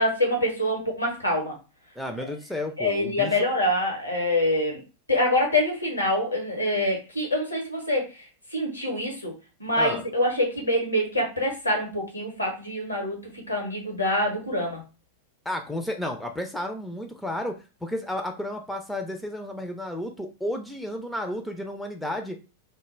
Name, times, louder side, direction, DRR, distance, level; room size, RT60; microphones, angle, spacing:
voice 1, 0.0-1.5 2.2-2.3 2.8-4.8 5.1-8.1 8.5-9.3 9.6-13.2 13.5-14.8, left 1 dB, 85° left, 0 dB, 0.9 m, -25 dB
voice 2, 2.0-3.4 9.8-10.0 15.5-22.4, left 1 dB, 5° left, 4 dB, 0.3 m, -32 dB
2.1 x 2.0 x 3.1 m, 0.31 s
figure-of-eight pair, 90°, 0 cm